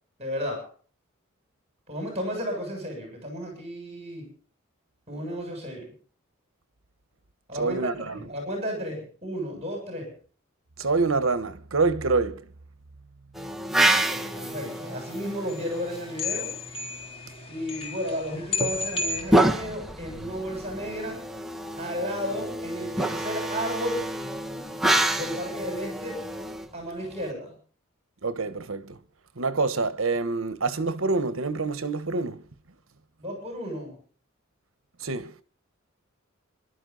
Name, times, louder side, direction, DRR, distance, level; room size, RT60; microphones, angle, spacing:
voice 1, 0.2-0.7 1.9-4.3 5.1-5.9 7.5-10.1 13.9-16.5 17.5-21.2 21.8-24.1 25.1-26.2 26.7-27.5 33.2-34.0, equal, 30° right, 7.3 m, -33 dB
voice 2, 7.5-8.3 10.8-12.5 28.2-29.0 29.4-32.4 35.0-35.3, right 3 dB, 75° right, 1.2 m, -26 dB
sound 1, 13.4-16.5 18.3-27.3, right 1 dB, ahead, 1.2 m, -28 dB
sound 2, 14.1-19.2, left 3 dB, 30° left, 3.4 m, -34 dB
26.5 x 12.0 x 4.0 m
head